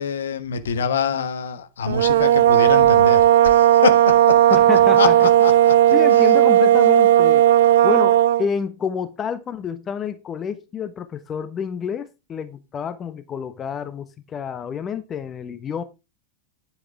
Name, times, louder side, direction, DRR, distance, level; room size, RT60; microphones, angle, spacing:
voice 1, 0.0-4.6 5.0-5.7 6.1-6.3 7.7-7.8, left 7 dB, 65° left, 1.4 m, -26 dB
sound 1, 1.9-8.5, right 12 dB, 60° right, 0.5 m, -15 dB
voice 2, 4.5-5.3 5.9-7.4 7.8-15.8, left 7 dB, 25° left, 1.1 m, -29 dB
10.0 x 8.5 x 3.4 m
figure-of-eight pair, 90°, 0 cm